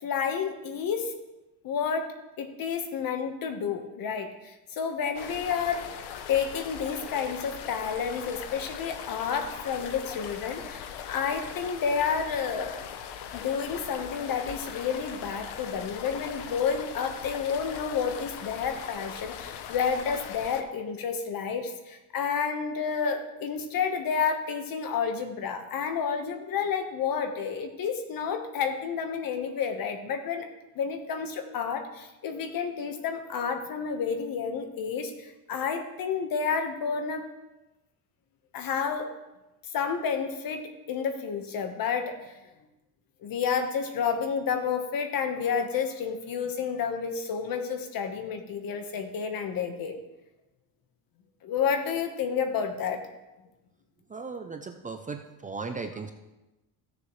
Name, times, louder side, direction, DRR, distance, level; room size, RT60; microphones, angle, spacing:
voice 1, 0.0-1.1 1.6-5.9 6.3-12.8 13.3-30.5 30.7-37.3 38.5-39.1 39.7-42.3 43.2-50.0 51.4-53.0, left 6 dB, 50° left, 7 dB, 1.3 m, -30 dB
sound 1, 5.1-20.6, left 8 dB, 70° left, 0.9 m, -40 dB
voice 2, 54.1-56.1, right 4 dB, 20° right, 5 dB, 0.5 m, -37 dB
15.5 x 7.0 x 3.2 m, 1.0 s
cardioid pair, 125°, 43 cm